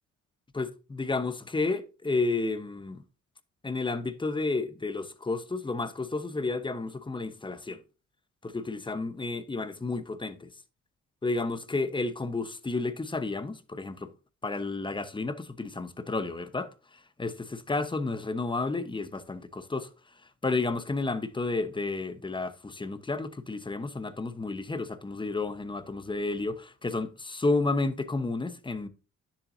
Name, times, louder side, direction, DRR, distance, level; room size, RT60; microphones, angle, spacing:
voice 1, 0.5-3.0 3.6-7.8 8.4-10.5 11.2-14.1 14.4-19.9 20.4-28.9, left 3 dB, 15° left, 1.0 m, -31 dB
10.0 x 7.3 x 2.7 m
cardioid pair, 90°, 30 cm